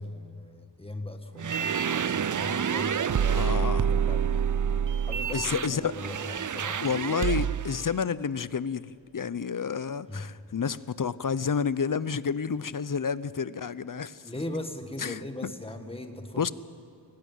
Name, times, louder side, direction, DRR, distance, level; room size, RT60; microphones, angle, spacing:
voice 1, 0.0-4.6 5.0-6.9 10.1-10.3 14.2-16.5, left 1 dB, 10° left, 5 dB, 1.8 m, -39 dB
sound 1, 1.4-7.8, right 7 dB, 40° right, 0.5 m, -27 dB
voice 2, 3.3-4.0 5.3-5.9 6.8-14.2 15.0-15.5 16.4-16.5, left 6 dB, 45° left, 17 dB, 0.7 m, -30 dB
22.0 x 18.0 x 9.4 m, 2.3 s
wide cardioid pair, 90°, 47 cm